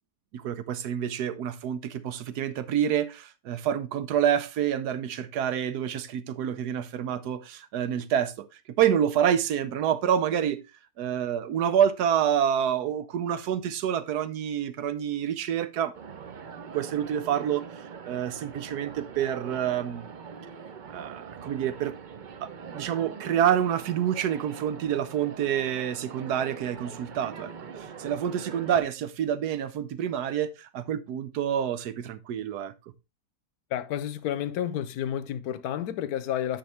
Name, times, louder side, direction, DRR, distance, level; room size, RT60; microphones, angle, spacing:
voice 1, 0.3-8.5 8.8-10.6 11.0-15.9 16.7-20.1 20.9-21.9 22.4-32.7, right 9 dB, 80° right, 1.3 m, -28 dB
sound 1, 15.9-28.8, right 6 dB, 55° right, 0.5 m, -43 dB
voice 2, 33.7-36.6, left 10 dB, 75° left, 1.1 m, -30 dB
9.3 x 5.7 x 3.3 m
omnidirectional pair, 1.7 m